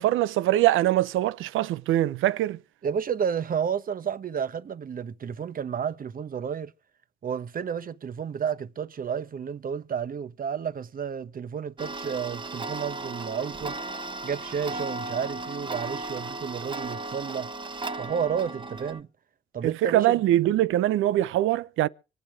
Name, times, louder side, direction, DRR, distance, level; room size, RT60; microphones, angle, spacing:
voice 1, 0.0-2.6 19.6-21.9, right 14 dB, 90° right, 0.8 m, -23 dB
voice 2, 2.8-6.7 7.2-13.8 14.2-17.5 18.0-19.1 19.5-20.1, right 7 dB, 45° right, 1.0 m, -31 dB
Tick-tock, 11.8-19.0, right 2 dB, 25° right, 1.2 m, -35 dB
25.5 x 8.9 x 4.7 m
cardioid pair, 90°, 20 cm